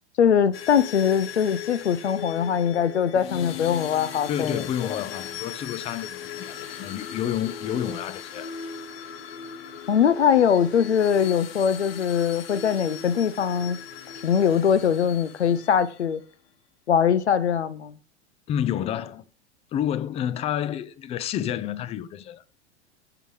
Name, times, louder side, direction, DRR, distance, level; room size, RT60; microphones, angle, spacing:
voice 1, 0.2-4.6 9.9-13.8 14.2-16.2 16.9-18.0, left 8 dB, 75° left, 0.7 m, -22 dB
sound 1, 0.5-16.2, left 8 dB, 60° left, 1.1 m, -38 dB
voice 2, 4.3-8.5 18.5-19.2 19.7-22.4, left 10 dB, 20° left, 0.4 m, -29 dB
15.5 x 5.9 x 3.2 m
figure-of-eight pair, 90°, 34 cm